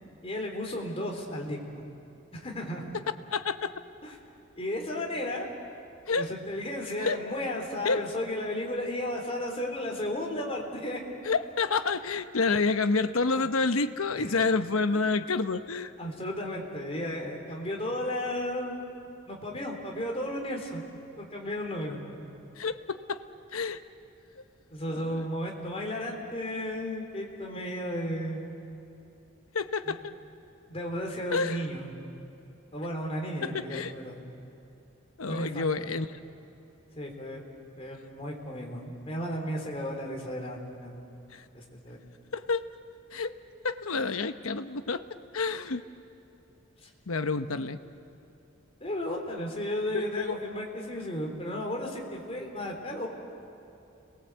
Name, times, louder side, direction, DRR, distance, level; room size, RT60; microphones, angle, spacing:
voice 1, 0.2-1.8 2.3-2.8 4.0-4.2 4.6-5.5 6.1-11.0 14.1-14.3 16.0-18.8 19.3-20.8 21.2-22.0 24.7-28.5 29.8-29.9 30.7-31.9 32.7-34.2 35.3-35.7 37.0-37.4 37.8-41.0 41.5-42.0 46.8-46.9 48.8-53.1, left 1 dB, 30° left, 0 dB, 3.6 m, -34 dB
voice 2, 3.3-3.7 6.1-6.3 7.0-7.2 7.8-8.0 11.2-15.9 22.6-23.2 23.5-23.8 24.9-25.2 29.5-30.0 31.3-31.6 33.4-33.9 35.2-36.1 41.3-41.4 42.3-42.6 43.1-43.3 43.6-45.0 45.3-45.8 47.1-47.8 49.9-50.4, left 4 dB, 90° left, 10 dB, 1.0 m, -28 dB
30.0 x 21.0 x 8.2 m, 2.8 s
head